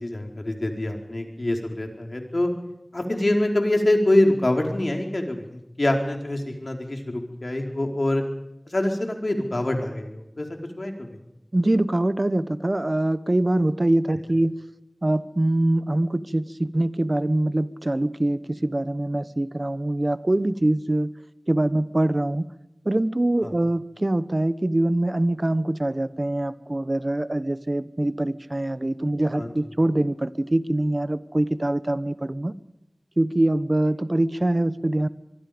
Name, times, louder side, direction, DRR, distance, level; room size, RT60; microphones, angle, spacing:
voice 1, 0.0-2.5 2.9-8.2 8.7-10.5 10.8-11.1 23.4-23.5 29.4-29.5, left 1 dB, 65° left, 3 dB, 4.6 m, -25 dB
voice 2, 11.5-14.6 15.0-21.1 21.5-22.5 22.8-32.5 33.2-35.1, right 1 dB, 45° right, 14 dB, 1.1 m, -24 dB
24.5 x 24.0 x 5.2 m, 0.85 s
wide cardioid pair, 40°, 0 cm